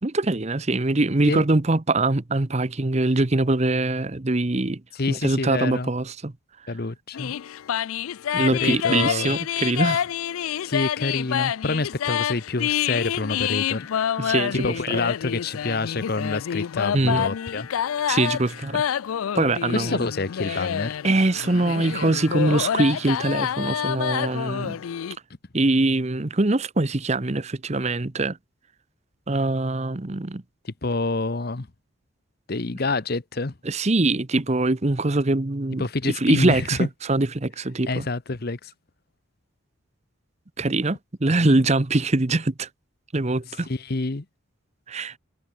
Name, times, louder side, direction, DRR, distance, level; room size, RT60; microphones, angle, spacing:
voice 1, 0.0-4.8 5.1-6.3 8.3-10.1 14.2-15.0 16.9-17.3 18.1-18.8 19.3-20.1 20.5-20.7 21.0-24.8 25.5-28.4 29.3-30.4 33.6-38.1 40.6-42.7 43.1-43.7 44.9-45.1, right 2 dB, 30° right, 0.8 m, -23 dB
voice 2, 5.0-5.9 6.7-7.4 8.6-9.4 10.6-13.9 14.5-17.7 19.7-21.0 30.8-31.7 32.5-33.5 35.8-36.9 37.9-38.7 41.3-41.6 43.7-44.2, left 3 dB, 45° left, 0.9 m, -27 dB
sound 1, 7.1-25.2, left 9 dB, 80° left, 0.4 m, -27 dB
head